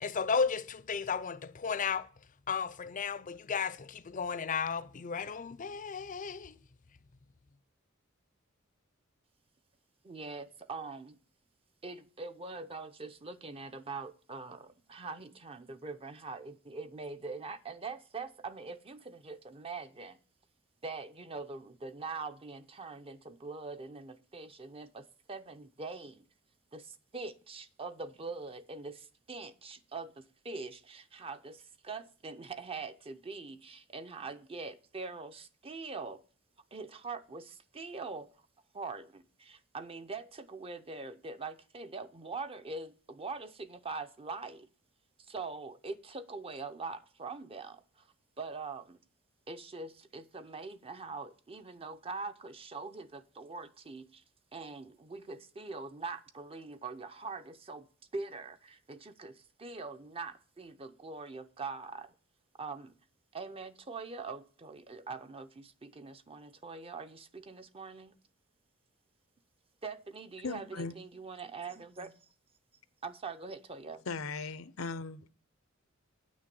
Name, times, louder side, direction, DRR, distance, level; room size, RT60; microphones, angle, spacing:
voice 1, 0.0-2.1 2.5-6.6, left 5 dB, 40° left, 0.5 m, -34 dB
voice 2, 10.0-11.2 11.8-20.2 20.8-26.3 26.7-36.2 36.7-38.5 38.7-44.7 45.2-49.0 49.5-54.2 54.5-57.9 58.1-62.1 62.6-62.9 63.3-68.2 69.8-72.1 73.0-74.1, right 4 dB, 30° right, 0.6 m, -43 dB
voice 3, 70.4-70.9 74.1-75.3, left 4 dB, 85° left, 0.7 m, -38 dB
9.2 x 6.3 x 7.6 m
head